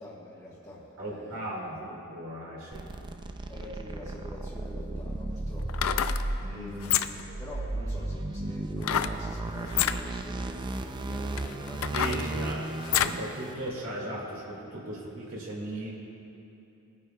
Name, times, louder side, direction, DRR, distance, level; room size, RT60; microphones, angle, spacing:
voice 1, 0.0-1.7 3.5-12.5, left 1 dB, 15° left, -8 dB, 1.1 m, -46 dB
voice 2, 1.0-2.9 6.4-6.9 11.9-12.6 12.9-15.9, right 1 dB, 75° right, -4 dB, 1.9 m, -37 dB
sound 1, 2.7-13.5, right 2 dB, 20° right, 0.4 m, -35 dB
sound 2, 5.6-6.2 6.8-7.3 8.8-9.2 9.7-10.0 10.7-10.8 11.3-13.2 13.7-13.8, left 10 dB, 70° left, 0.4 m, -28 dB
20.0 x 9.5 x 2.2 m, 2.8 s
head